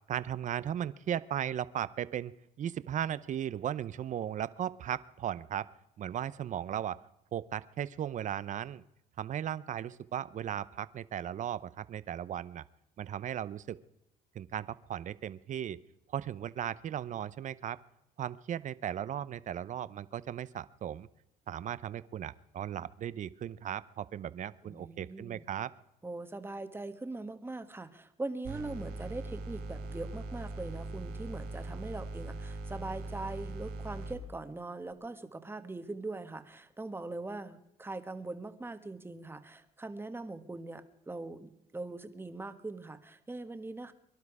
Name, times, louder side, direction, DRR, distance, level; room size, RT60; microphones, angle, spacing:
voice 1, 0.1-5.7 6.0-7.0 7.3-8.8 9.2-12.6 13.0-13.8 14.3-15.8 16.1-17.8 18.2-21.1 21.5-25.7, right 10 dB, 45° right, 17 dB, 0.7 m, -36 dB
voice 2, 24.6-25.4 26.0-43.9, right 2 dB, 15° right, 9 dB, 1.4 m, -41 dB
sound 1, 28.4-34.2, right 2 dB, 70° right, 4.0 m, -41 dB
23.5 x 12.0 x 4.9 m, 0.83 s
cardioid pair, 110°, 17 cm